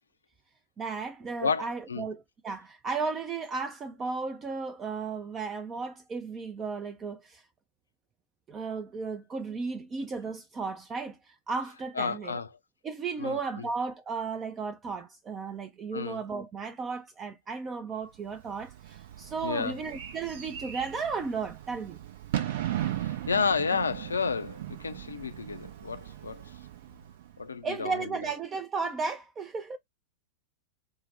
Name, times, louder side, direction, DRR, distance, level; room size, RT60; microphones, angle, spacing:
voice 1, 0.8-7.4 8.5-12.3 12.8-22.0 27.6-29.8, right 4 dB, 25° right, 0.4 m, -34 dB
voice 2, 1.4-2.1 12.0-12.5 13.2-13.7 15.9-16.2 19.4-19.8 23.0-26.6 27.4-28.3, left 5 dB, 75° left, 0.4 m, -31 dB
Bird / Fireworks, 18.3-27.5, right 12 dB, 55° right, 0.7 m, -38 dB
4.4 x 2.0 x 3.1 m
figure-of-eight pair, 90°, 0 cm